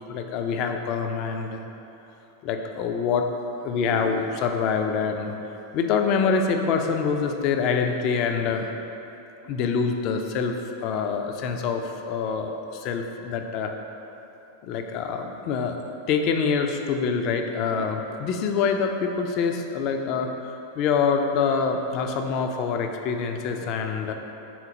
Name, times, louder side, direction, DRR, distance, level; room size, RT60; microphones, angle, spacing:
voice 1, 0.1-1.7 2.4-3.2 3.6-5.3 5.7-8.7 9.4-10.5 10.8-13.7 14.6-15.8 16.1-20.3 20.8-24.1, left 5 dB, 40° left, 4 dB, 0.3 m, -25 dB
4.3 x 3.7 x 2.7 m, 3.0 s
figure-of-eight pair, 90°, 0 cm